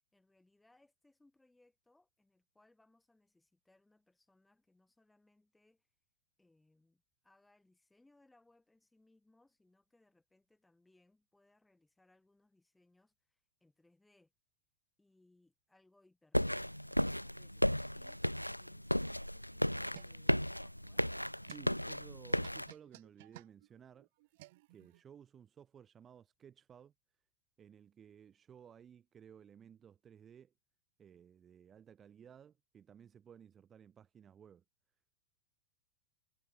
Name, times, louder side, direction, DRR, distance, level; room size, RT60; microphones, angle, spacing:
voice 1, 0.1-5.9 6.4-14.3 15.0-17.7, left 2 dB, 5° left, 6.8 m, -71 dB
sound 1, 16.3-22.7, equal, 90° left, 0.4 m, -35 dB
sound 2, 19.6-25.0, right 20 dB, 50° right, 1.0 m, -58 dB
voice 2, 21.4-24.1 24.7-26.9 27.6-30.5 31.0-34.6, right 8 dB, 25° right, 4.4 m, -57 dB
figure-of-eight pair, 90°, 0 cm